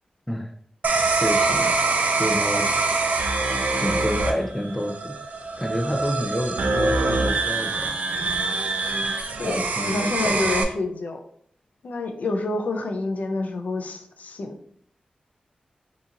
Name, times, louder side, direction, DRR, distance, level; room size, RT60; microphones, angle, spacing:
sound 1, 0.8-10.6, right 3 dB, 75° right, 0.4 m, -24 dB
voice 1, 1.2-1.7 2.2-2.7 3.7-5.1 5.6-7.9 9.4-10.4, equal, 10° left, 3 dB, 0.5 m, -28 dB
voice 2, 9.4-11.2 11.8-14.6, left 2 dB, 80° left, 4 dB, 0.5 m, -28 dB
2.8 x 2.5 x 3.7 m, 0.64 s
wide cardioid pair, 80°, 3 cm